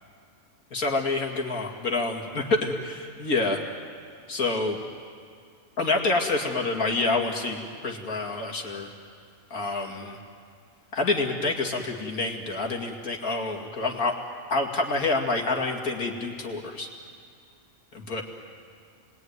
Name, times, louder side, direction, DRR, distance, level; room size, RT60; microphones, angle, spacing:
voice 1, 0.7-3.6 4.3-4.8 5.8-8.9 9.5-10.2 10.9-14.1 14.5-16.9 17.9-18.2, left 3 dB, 80° left, 1 dB, 2.7 m, -27 dB
29.0 x 20.5 x 9.5 m, 2.2 s
omnidirectional pair, 1.5 m